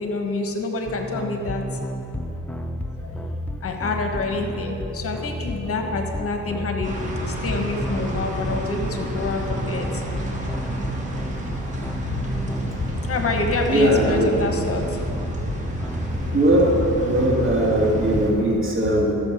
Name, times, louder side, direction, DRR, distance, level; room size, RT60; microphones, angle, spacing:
voice 1, 0.0-1.7 3.0-3.3 3.6-7.0 7.2-10.1 11.8-12.5 12.9-15.0 16.1-16.7 18.8-18.9, left 3 dB, 50° left, 4 dB, 1.2 m, -28 dB
sound 1, 0.9-18.5, equal, 5° left, 0.5 m, -32 dB
sound 2, 6.8-18.3, equal, 25° right, 1.9 m, -30 dB
voice 2, 13.7-14.3 16.3-16.7 17.0-19.1, right 1 dB, 45° right, -3 dB, 2.5 m, -19 dB
13.0 x 7.4 x 4.8 m, 2.9 s
cardioid pair, 90°, 30 cm